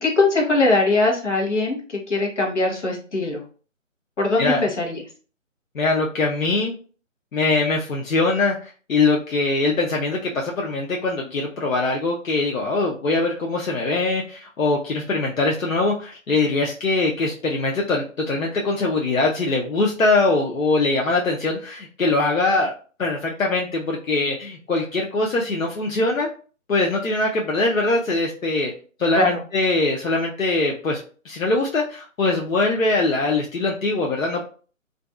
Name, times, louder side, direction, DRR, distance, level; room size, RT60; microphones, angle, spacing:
voice 1, 0.0-3.4 4.2-5.0 29.1-29.4, left 2 dB, 60° left, 0 dB, 1.0 m, -21 dB
voice 2, 5.7-6.7 7.3-22.7 23.0-26.3 26.7-28.7 29.0-34.5, left 3 dB, 80° left, -1 dB, 0.6 m, -22 dB
2.5 x 2.3 x 2.3 m, 0.39 s
figure-of-eight pair, 150°, 40 cm